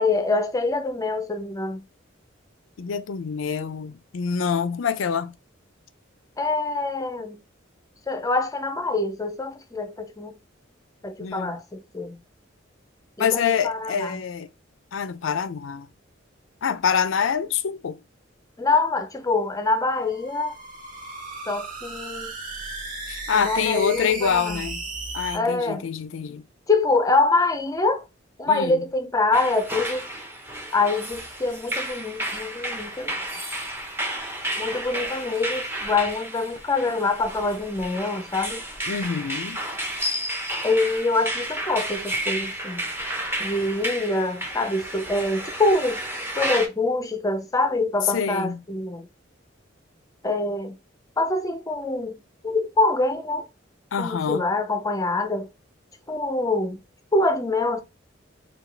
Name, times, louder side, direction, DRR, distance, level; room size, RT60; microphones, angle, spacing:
voice 1, 0.0-1.8 6.4-7.4 8.1-10.3 11.0-12.2 13.2-14.2 18.6-20.6 21.5-22.3 23.3-24.6 25.3-25.8 26.7-28.0 28.4-30.1 30.7-33.2 34.6-38.7 40.6-42.9 43.4-46.0 46.4-49.1 50.2-50.8 51.2-52.2 52.4-53.5 54.0-55.5 56.1-56.8 57.1-57.8, left 3 dB, 20° left, 0.5 m, -25 dB
voice 2, 2.8-5.3 11.2-11.6 13.2-14.5 14.9-15.9 16.6-18.0 23.1-24.8 25.1-26.4 28.5-28.8 38.9-39.6 48.1-48.6 53.9-54.5, left 6 dB, 85° left, 0.5 m, -26 dB
sound 1, 20.0-25.4, right 3 dB, 45° right, 2.0 m, -36 dB
sound 2, 29.3-46.7, right 1 dB, 10° right, 0.9 m, -32 dB
4.8 x 2.3 x 3.3 m
head